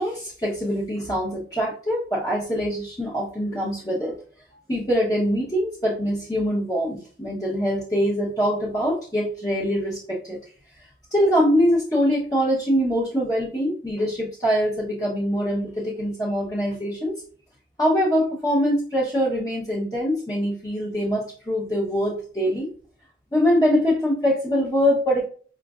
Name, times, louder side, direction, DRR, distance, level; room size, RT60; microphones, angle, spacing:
voice 1, 0.0-4.2 4.7-10.4 11.1-17.2 17.8-22.7 23.3-25.2, equal, 20° left, -6 dB, 0.7 m, -23 dB
5.0 x 2.4 x 2.3 m, 0.44 s
head